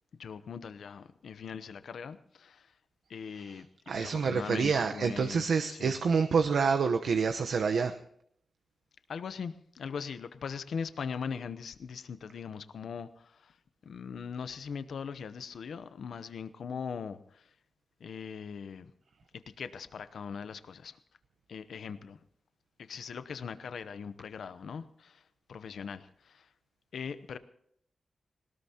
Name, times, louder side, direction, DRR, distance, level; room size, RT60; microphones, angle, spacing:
voice 1, 0.2-2.7 3.1-3.7 3.9-6.0 9.1-13.6 13.8-17.5 18.0-18.9 19.6-21.0 21.5-22.2 22.8-25.2 25.5-26.5 26.9-27.4, left 6 dB, 80° left, 12 dB, 0.8 m, -40 dB
voice 2, 3.9-8.0, right 5 dB, 75° right, 7 dB, 0.9 m, -28 dB
21.0 x 19.0 x 2.9 m, 0.68 s
wide cardioid pair, 140°, 0 cm